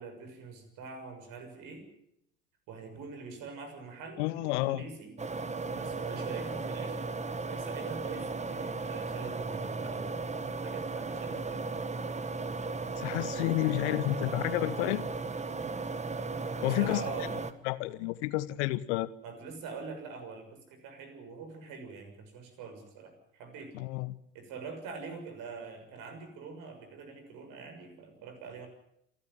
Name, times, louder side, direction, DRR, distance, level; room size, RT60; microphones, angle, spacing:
voice 1, 0.0-1.9 2.7-5.1 5.7-7.1 7.5-10.3 10.6-11.9 16.7-17.4 19.2-23.7 24.3-28.7, right 4 dB, 55° right, 7 dB, 6.5 m, -44 dB
voice 2, 4.2-4.8 13.0-15.0 16.6-17.0 17.6-19.1 23.7-24.2, left 18 dB, 65° left, 17 dB, 1.1 m, -30 dB
sound 1, 5.2-17.5, right 3 dB, 20° right, 1.6 m, -36 dB
28.0 x 12.0 x 9.6 m, 0.78 s
hypercardioid pair, 65°, 37 cm